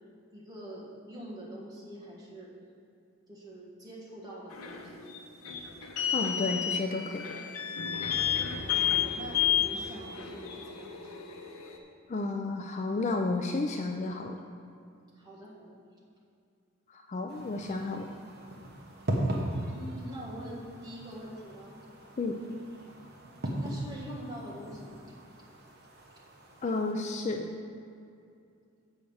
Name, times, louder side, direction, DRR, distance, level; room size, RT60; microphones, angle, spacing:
voice 1, 0.3-2.5 3.3-5.5 6.5-6.6 8.6-11.3 15.2-15.8 19.7-21.7 23.6-25.0, right 1 dB, 15° right, -5 dB, 1.5 m, -45 dB
sound 1, 4.5-11.8, left 9 dB, 85° left, 0.8 m, -31 dB
voice 2, 6.1-7.4 12.1-14.4 16.9-18.1 22.2-22.4 26.6-27.5, left 3 dB, 30° left, 3 dB, 0.3 m, -32 dB
sound 2, 17.3-26.9, right 1 dB, 45° right, 1.0 m, -38 dB
7.6 x 4.9 x 7.1 m, 2.5 s
head